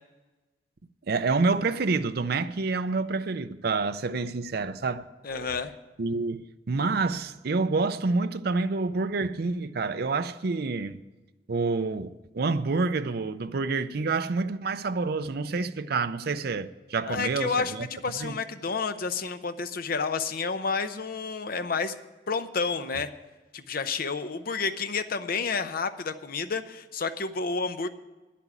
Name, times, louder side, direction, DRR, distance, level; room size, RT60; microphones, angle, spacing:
voice 1, 1.1-5.5 6.0-11.0 11.5-17.9 18.2-18.4, right 3 dB, 60° right, 0.5 m, -28 dB
voice 2, 5.2-5.7 17.0-21.9 22.3-23.1 23.5-27.9, left 4 dB, 55° left, 0.7 m, -30 dB
10.0 x 8.5 x 8.3 m
head